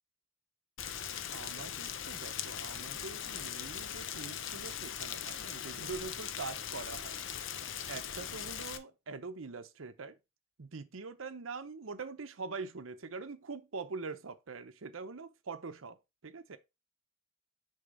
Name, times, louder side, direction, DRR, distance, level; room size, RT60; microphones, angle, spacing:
Rain, 0.8-8.8, left 9 dB, 70° left, 0.7 m, -40 dB
voice 1, 1.3-7.2 7.9-10.2 10.6-16.0 16.2-16.6, right 4 dB, 80° right, 0.8 m, -44 dB
6.6 x 3.5 x 5.3 m
head